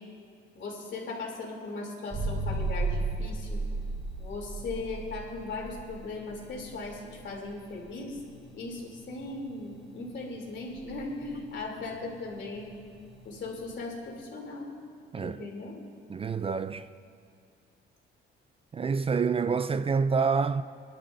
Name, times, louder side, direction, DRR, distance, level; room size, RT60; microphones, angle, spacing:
voice 1, 0.5-3.6 4.2-8.2 8.5-12.7 13.2-14.7 15.1-15.8, left 3 dB, 65° left, 3.2 m, -38 dB
sound 1, 2.1-13.8, right 2 dB, ahead, 2.8 m, -36 dB
voice 2, 16.1-16.9 18.7-20.6, right 5 dB, 30° right, 0.3 m, -27 dB
22.0 x 11.5 x 2.7 m
cardioid pair, 90°, 20 cm